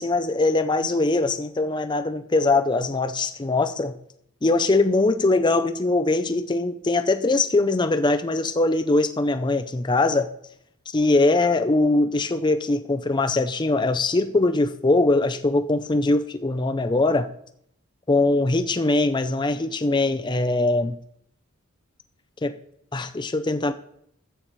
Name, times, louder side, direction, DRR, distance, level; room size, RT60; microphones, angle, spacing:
voice 1, 0.0-4.0 4.4-10.3 10.9-17.3 18.1-21.0 22.4-22.5 22.9-23.7, left 2 dB, 20° left, 10 dB, 0.5 m, -22 dB
13.5 x 8.2 x 3.1 m, 0.72 s
head